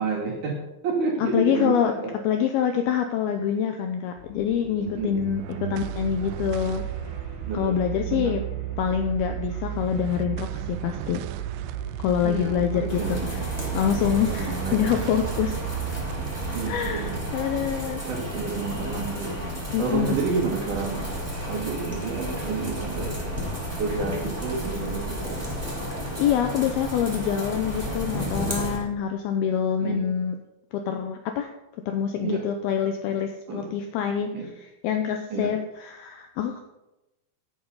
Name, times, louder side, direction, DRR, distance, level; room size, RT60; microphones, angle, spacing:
voice 1, 0.0-2.1 4.7-5.8 7.4-8.3 12.2-13.4 13.7-13.8 14.3-15.0 16.5-17.2 18.0-19.5 19.8-23.2 23.8-25.4 29.8-30.1 32.2-32.4 33.5-33.7 34.3-34.5 35.3-35.5, right 4 dB, 50° right, -3 dB, 3.6 m, -30 dB
voice 2, 1.2-1.9 2.2-6.8 7.5-8.4 8.8-11.2 12.0-13.5 13.7-15.6 16.7-18.0 19.7-20.2 26.2-30.4 30.7-31.5 31.9-34.3 34.8-36.6, left 8 dB, 85° left, 6 dB, 2.2 m, -26 dB
sound 1, 4.1-24.0, left 1 dB, 25° left, 2.0 m, -42 dB
sound 2, 4.9-19.5, right 15 dB, 85° right, 2.4 m, -34 dB
sound 3, 12.9-28.8, equal, 5° right, 4.3 m, -32 dB
14.5 x 9.9 x 4.0 m, 0.96 s
omnidirectional pair, 5.2 m